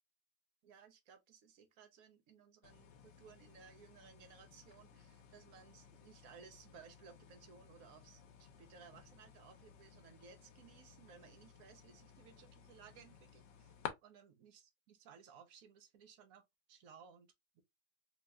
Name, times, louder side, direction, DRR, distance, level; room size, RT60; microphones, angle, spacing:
voice 1, 0.6-13.7 14.0-16.4 16.7-17.6, right 6 dB, 60° right, 1.1 m, -60 dB
sound 1, 2.6-13.9, left 9 dB, 75° left, 1.4 m, -55 dB
4.4 x 2.9 x 2.3 m
omnidirectional pair, 2.0 m